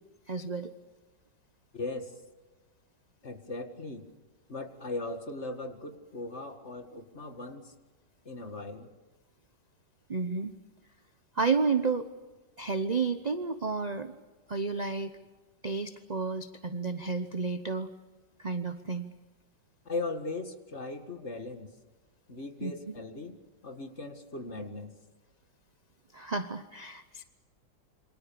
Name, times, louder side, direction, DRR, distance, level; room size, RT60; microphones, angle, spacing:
voice 1, 0.3-0.7 10.1-10.6 11.4-12.1 12.6-14.2 14.5-15.1 15.6-17.9 18.4-19.1 22.6-22.9 26.1-27.2, right 4 dB, 35° right, 10 dB, 0.7 m, -31 dB
voice 2, 1.7-2.1 3.2-4.1 4.5-7.7 8.3-8.9 19.9-21.7 22.3-23.4 23.6-24.9, left 2 dB, 40° left, 7 dB, 2.1 m, -38 dB
28.0 x 25.0 x 7.0 m, 1.2 s
omnidirectional pair, 1.9 m